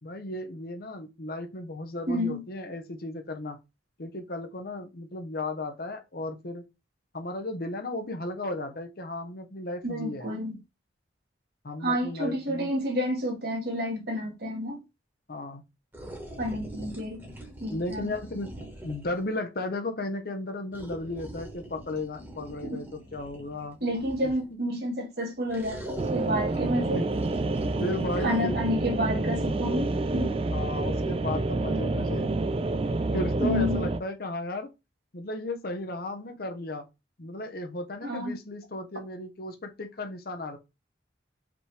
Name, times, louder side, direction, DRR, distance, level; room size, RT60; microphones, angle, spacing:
voice 1, 0.0-3.6 4.0-6.6 7.1-10.3 11.6-12.7 15.3-15.6 16.8-16.9 17.7-18.5 18.8-23.8 24.2-24.6 26.9-27.1 27.8-28.8 30.5-32.3 33.1-34.7 35.1-36.9 37.2-40.6, left 2 dB, 55° left, 0.8 m, -35 dB
voice 2, 2.1-2.4 9.8-10.6 11.8-14.8 16.4-17.2 17.6-18.1 22.6-22.8 23.8-27.0 28.2-30.4 33.4-33.8 38.0-38.3, equal, 60° right, 1.7 m, -29 dB
sound 1, 15.9-19.3 20.7-24.5 25.5-28.4, right 1 dB, 10° right, 1.4 m, -43 dB
sound 2, 26.0-34.0, right 2 dB, 30° right, 0.4 m, -28 dB
5.1 x 3.1 x 3.3 m
head